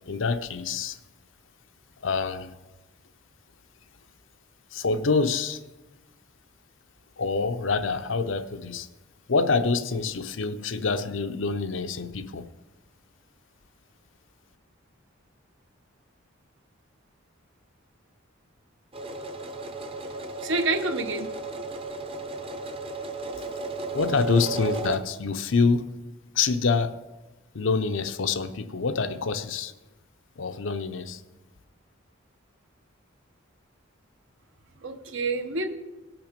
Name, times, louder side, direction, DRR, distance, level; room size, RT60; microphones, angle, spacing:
voice 1, 0.1-1.0 2.0-2.5 4.7-5.6 7.2-8.9 9.3-12.5 23.9-25.9 26.3-27.0 27.5-29.7 30.4-31.2, left 4 dB, 70° left, 0.7 m, -26 dB
sound 1, 18.9-25.0, right 2 dB, 30° right, 0.8 m, -34 dB
voice 2, 20.4-21.3 34.8-35.7, right 3 dB, 65° right, 1.1 m, -28 dB
17.5 x 5.9 x 5.2 m
head